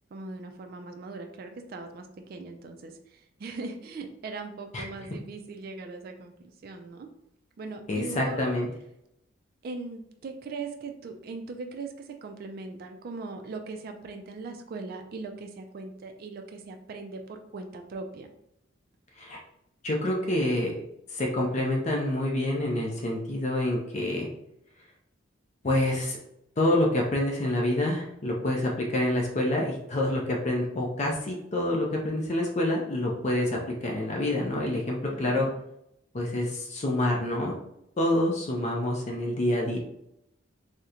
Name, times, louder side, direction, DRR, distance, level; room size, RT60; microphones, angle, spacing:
voice 1, 0.1-7.1 7.6-8.5 9.6-18.3 35.1-35.5, right 3 dB, 50° right, 4 dB, 0.3 m, -40 dB
voice 2, 7.9-8.7 19.2-19.4 19.8-20.7 21.1-24.3 25.6-26.2 26.6-35.5 36.1-37.5 38.0-39.8, left 1 dB, 35° left, -1 dB, 0.5 m, -27 dB
2.8 x 2.1 x 3.6 m, 0.79 s
head